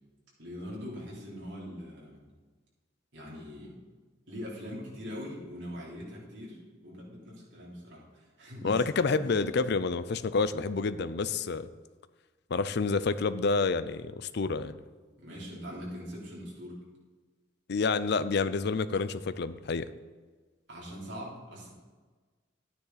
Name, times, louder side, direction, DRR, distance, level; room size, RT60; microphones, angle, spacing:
voice 1, 0.4-2.2 3.1-3.7 4.3-9.4 15.2-16.8 20.7-21.7, equal, 65° right, -5 dB, 3.8 m, -42 dB
voice 2, 8.6-11.7 12.5-14.8 17.7-19.9, left 4 dB, 60° left, 14 dB, 0.5 m, -28 dB
12.5 x 9.5 x 4.0 m, 1.4 s
head